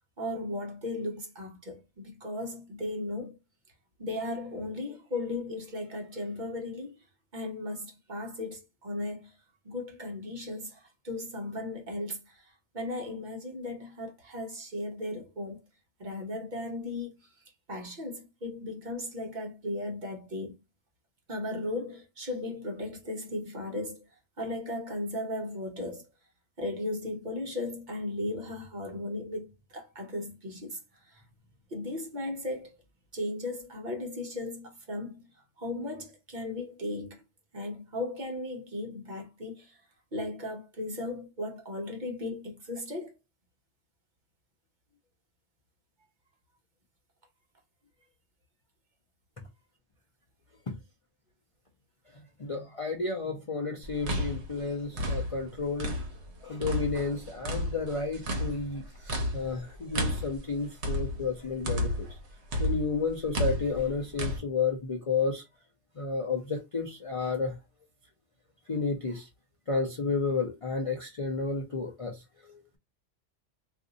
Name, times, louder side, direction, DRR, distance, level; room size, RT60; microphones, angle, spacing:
voice 1, 0.2-3.4 4.0-7.0 7.3-9.4 9.6-15.6 16.0-20.6 21.3-24.1 24.4-26.1 26.6-31.2 31.7-32.8 33.1-37.2 37.5-39.8 40.1-43.2, left 2 dB, 45° right, 0.8 m, -36 dB
voice 2, 52.4-55.9 56.4-62.1 62.6-65.4 66.0-67.5 68.7-69.3 69.7-72.8, left 4 dB, 40° left, 0.5 m, -32 dB
sound 1, 53.8-56.3 56.6-62.2 62.5-64.4, left 1 dB, 65° right, 1.1 m, -32 dB
2.5 x 2.5 x 3.8 m
omnidirectional pair, 1.2 m